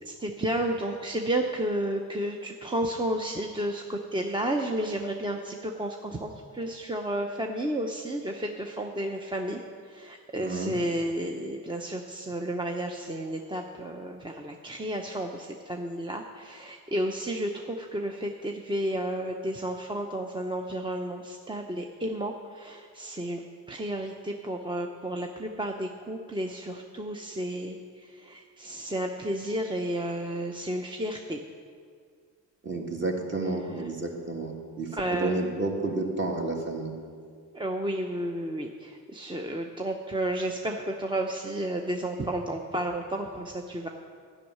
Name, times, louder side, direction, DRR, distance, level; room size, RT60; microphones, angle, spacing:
voice 1, 0.0-31.4 33.8-33.9 35.0-35.4 37.5-43.9, right 1 dB, 15° right, 2 dB, 0.7 m, -32 dB
voice 2, 10.4-10.8 32.6-36.9, right 2 dB, 35° right, 1 dB, 1.9 m, -31 dB
12.0 x 6.4 x 9.2 m, 2.1 s
cardioid pair, 115°, 35 cm